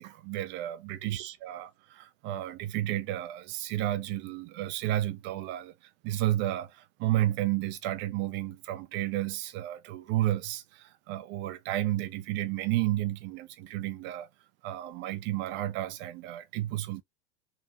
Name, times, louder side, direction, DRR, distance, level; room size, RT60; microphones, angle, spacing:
voice 1, 0.0-14.3 14.6-17.0, right 14 dB, 35° right, 0.4 m, -32 dB
3.3 x 2.4 x 2.9 m
figure-of-eight pair, 80°, 31 cm